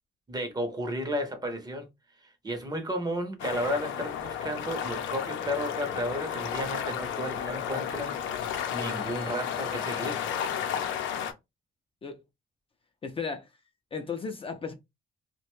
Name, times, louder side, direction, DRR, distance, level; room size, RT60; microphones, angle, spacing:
voice 1, 0.3-1.9 2.2-10.3, equal, 20° right, 0.7 m, -33 dB
sound 1, 3.4-11.3, left 8 dB, 90° left, 0.5 m, -33 dB
voice 2, 13.0-13.5 13.9-14.7, left 5 dB, 30° left, 0.4 m, -35 dB
2.4 x 2.1 x 3.0 m
cardioid pair, 120°, 19 cm